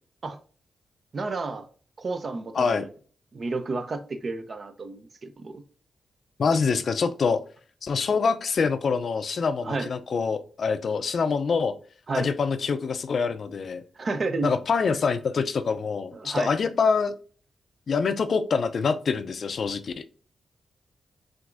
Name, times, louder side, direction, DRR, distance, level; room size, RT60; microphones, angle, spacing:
voice 1, 1.1-1.7 2.0-2.9 3.3-5.6 9.6-9.9 12.1-12.3 14.0-14.5 16.1-16.5, right 3 dB, 55° right, 0.6 m, -31 dB
voice 2, 2.5-2.8 6.4-7.4 7.8-11.7 12.1-13.8 14.4-17.1 17.9-20.1, left 5 dB, 65° left, 0.4 m, -25 dB
6.0 x 2.6 x 2.5 m
cardioid pair, 55°, 0 cm